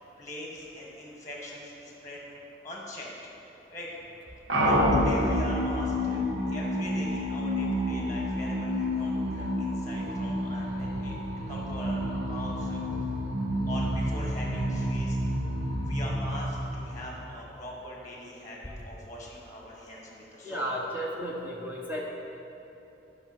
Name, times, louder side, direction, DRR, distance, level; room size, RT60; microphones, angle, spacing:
voice 1, 0.2-2.2 2.6-3.1 3.7-3.9 4.6-11.2 11.5-12.8 13.6-15.2 15.8-20.6, left 1 dB, 15° left, -2 dB, 1.4 m, -42 dB
sound 1, 4.5-17.4, equal, 80° right, 1.3 m, -29 dB
voice 2, 20.4-22.1, equal, 10° right, -3 dB, 0.8 m, -33 dB
11.0 x 5.4 x 6.0 m, 3.0 s
head